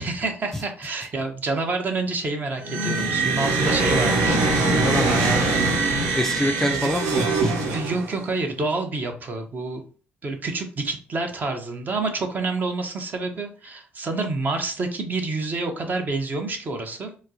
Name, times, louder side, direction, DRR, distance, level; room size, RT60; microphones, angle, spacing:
voice 1, 0.0-5.9 6.7-6.9 7.7-9.8 10.2-17.1, right 3 dB, 40° right, 5 dB, 0.8 m, -28 dB
sound 1, 2.6-8.3, right 3 dB, 90° right, 0.7 m, -22 dB
voice 2, 4.8-5.4 6.1-7.5, left 1 dB, 10° left, 4 dB, 0.4 m, -26 dB
4.0 x 2.0 x 2.7 m, 0.38 s
supercardioid pair, 75°, 4 cm